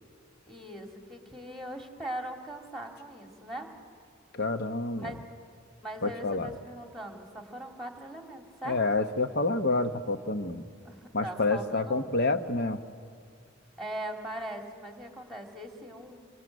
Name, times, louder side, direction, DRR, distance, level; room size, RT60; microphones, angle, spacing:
voice 1, 0.5-3.7 5.0-5.2 5.8-8.8 10.8-12.1 13.8-16.2, right 1 dB, ahead, 3 dB, 2.5 m, -40 dB
voice 2, 4.3-5.1 6.0-6.5 8.6-10.6 11.1-12.8, left 3 dB, 50° left, 8 dB, 1.1 m, -28 dB
26.5 x 23.5 x 9.2 m, 2.1 s
head